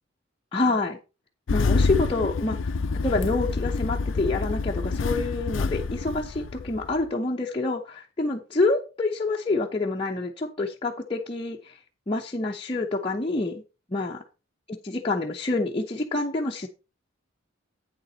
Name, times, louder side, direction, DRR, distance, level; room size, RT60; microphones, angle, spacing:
voice 1, 0.5-1.0 1.5-2.7 3.0-11.8 12.1-13.6 13.9-14.2 14.8-16.7, left 2 dB, 25° left, -2 dB, 0.8 m, -27 dB
Engine starting, 1.5-7.0, left 4 dB, 70° left, 0.5 m, -27 dB
8.8 x 7.1 x 3.9 m, 0.31 s
head